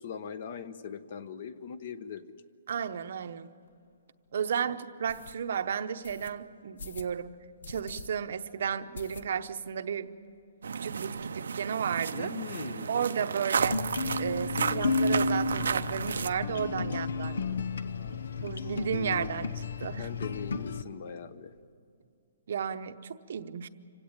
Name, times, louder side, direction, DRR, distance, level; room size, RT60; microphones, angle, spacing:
voice 1, 0.0-2.3 12.1-13.0 16.9-18.2 20.0-21.5, left 7 dB, 40° left, 14 dB, 0.9 m, -41 dB
voice 2, 2.7-3.5 4.3-7.3 7.7-10.1 10.8-12.3 12.9-13.8 14.2-17.3 18.4-20.1 22.5-23.7, right 7 dB, 50° right, 10 dB, 0.8 m, -33 dB
sound 1, 3.7-3.8 4.3-4.4 5.1-5.4 6.0-6.3 6.8-7.1 7.6-8.1 8.4-8.5 8.9-9.6 9.9-10.0 10.3-10.4 10.6-11.3, left 4 dB, 70° left, 1.3 m, -45 dB
sound 2, 10.6-16.3, right 6 dB, 85° right, 0.7 m, -33 dB
sound 3, 13.6-20.8, left 3 dB, 85° left, 0.9 m, -32 dB
26.0 x 17.0 x 8.9 m, 2.4 s
hypercardioid pair, 175°, 0 cm